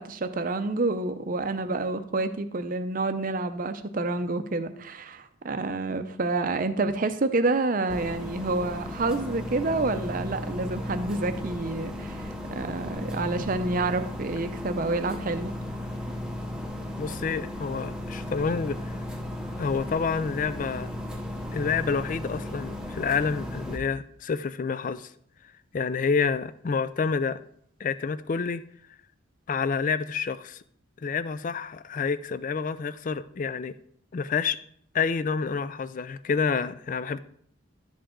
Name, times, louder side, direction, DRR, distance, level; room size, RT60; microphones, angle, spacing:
voice 1, 0.0-15.5, right 3 dB, 40° right, 0.6 m, -28 dB
sound 1, 7.9-23.8, left 1 dB, 5° right, 0.7 m, -35 dB
voice 2, 17.0-18.8 19.6-20.9 21.5-25.1 25.7-27.4 27.8-28.6 29.5-30.6 31.0-33.7 34.1-34.6 34.9-37.2, left 5 dB, 40° left, 0.3 m, -28 dB
11.5 x 4.9 x 3.7 m
head